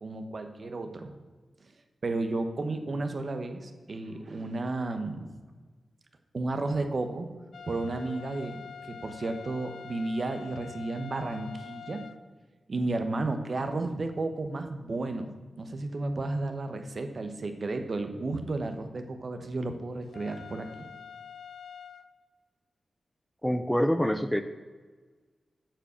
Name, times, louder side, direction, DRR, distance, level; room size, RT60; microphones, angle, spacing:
voice 1, 0.0-1.1 2.0-5.3 6.3-7.3 7.7-12.0 12.7-15.3 15.6-20.9, right 2 dB, 50° right, 7 dB, 1.0 m, -33 dB
sound 1, 7.5-12.2 20.1-22.1, left 7 dB, 80° left, 0.5 m, -45 dB
voice 2, 23.4-24.4, equal, 5° left, 10 dB, 0.4 m, -25 dB
8.8 x 5.2 x 6.9 m, 1.4 s
wide cardioid pair, 110°, 0 cm